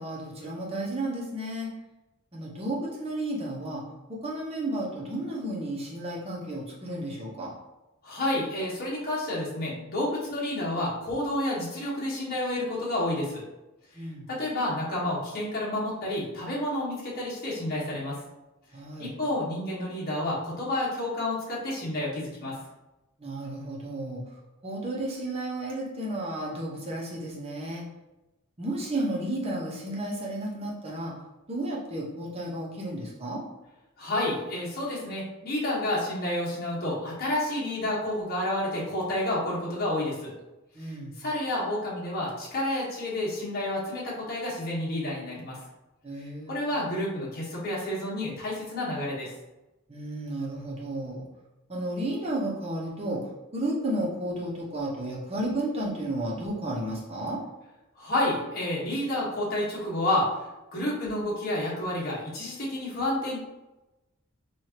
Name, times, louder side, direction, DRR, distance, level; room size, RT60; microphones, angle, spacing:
voice 1, 0.0-1.7 2.3-3.8 4.1-7.5 13.9-14.3 18.7-19.1 23.2-24.2 24.6-27.8 28.6-31.1 31.5-33.4 40.7-41.1 46.0-46.6 49.9-51.2 51.7-53.3 53.5-57.4, right 1 dB, 30° right, -4 dB, 1.1 m, -32 dB
voice 2, 8.0-13.4 14.3-18.2 19.0-22.6 34.0-40.3 40.8-45.6 46.5-49.3 58.0-60.3 60.7-63.4, left 1 dB, 50° left, -6 dB, 1.4 m, -30 dB
4.8 x 2.7 x 2.9 m, 1.0 s
head